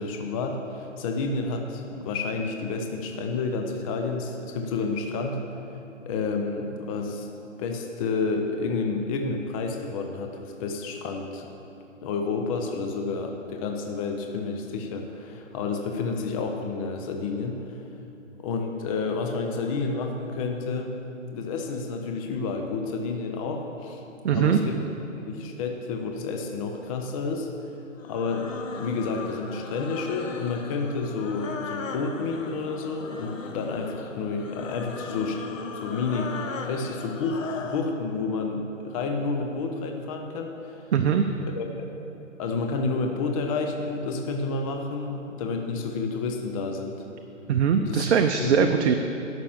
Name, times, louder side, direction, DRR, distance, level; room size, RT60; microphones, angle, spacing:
voice 1, 0.0-5.4 6.0-7.3 7.6-11.5 12.0-17.6 18.4-20.9 21.3-24.0 24.3-24.8 25.3-27.5 28.0-36.4 36.6-40.8 41.4-41.7 42.4-47.0 47.8-48.1 48.4-48.7, left 4 dB, 25° left, 3 dB, 0.8 m, -30 dB
voice 2, 24.2-24.6 40.9-41.3 47.5-49.0, right 7 dB, 55° right, 6 dB, 0.7 m, -21 dB
sound 1, 28.0-37.9, left 4 dB, 80° left, 1.2 m, -37 dB
11.5 x 6.1 x 7.4 m, 2.9 s
hypercardioid pair, 145°, 38 cm